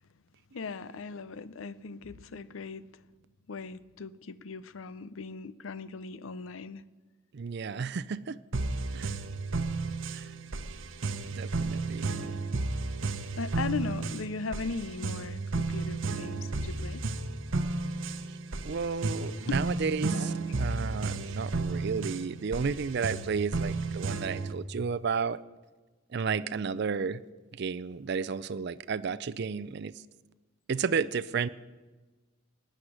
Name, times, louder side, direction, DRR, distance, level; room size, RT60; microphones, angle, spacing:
voice 1, 0.5-2.9 3.5-6.8 13.4-17.0 19.3-20.3, left 4 dB, 80° left, 0.6 m, -38 dB
voice 2, 7.3-8.4 8.9-9.1 10.1-10.3 11.3-12.1 18.6-25.4 26.1-27.2 27.6-29.9 30.7-31.5, right 5 dB, 55° right, 0.4 m, -32 dB
sound 1, 8.5-24.5, right 3 dB, 70° right, 0.9 m, -33 dB
18.5 x 6.5 x 9.9 m
head